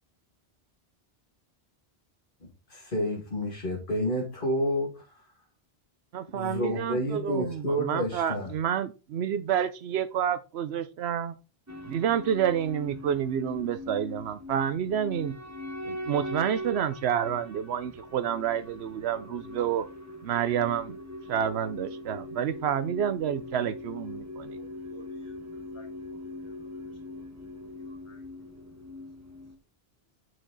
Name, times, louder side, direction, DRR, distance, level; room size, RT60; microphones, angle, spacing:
voice 1, 2.4-5.2 6.3-8.5, equal, 55° left, 2.4 m, -30 dB
voice 2, 6.1-11.4 11.9-15.3 15.8-19.9 20.2-21.0 21.3-24.6, right 9 dB, 85° right, 0.9 m, -29 dB
sound 1, 11.7-29.6, left 1 dB, 15° right, 1.2 m, -41 dB
voice 3, 24.5-26.8 27.8-28.2, left 1 dB, 15° left, 2.8 m, -57 dB
8.9 x 6.2 x 3.9 m
omnidirectional pair, 1.1 m